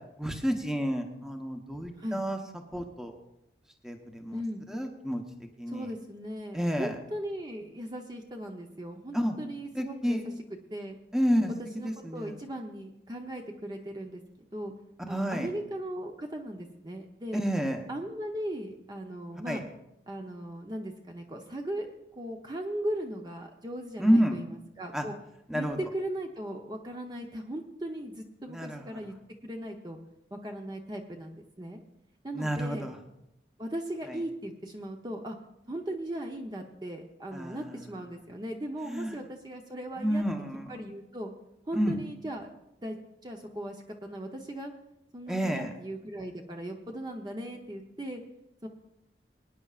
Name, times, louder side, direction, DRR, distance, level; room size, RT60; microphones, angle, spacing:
voice 1, 0.2-2.4 2.7-3.2 3.8-4.4 4.7-5.2 5.6-5.9 6.5-7.0 9.1-9.5 9.7-10.2 11.1-11.5 11.8-12.3 15.1-15.5 17.3-17.8 19.5-19.6 24.0-24.4 24.9-25.0 25.5-25.8 28.5-29.0 32.3-33.0 34.1-34.2 37.3-37.8 38.9-39.1 40.0-40.8 41.7-41.9 45.3-45.7, equal, 5° right, 3 dB, 1.0 m, -29 dB
voice 2, 4.3-4.6 5.7-10.2 10.7-11.0 11.6-14.2 14.5-14.7 15.1-17.4 17.9-19.6 20.1-21.9 22.1-25.1 25.5-29.1 29.4-30.0 30.3-31.8 32.2-32.9 33.6-35.4 35.7-40.2 40.7-41.3 41.7-42.5 42.8-44.7 45.1-48.2 48.6-48.7, right 1 dB, 25° right, 2 dB, 0.8 m, -38 dB
23.0 x 9.8 x 2.5 m, 0.85 s
head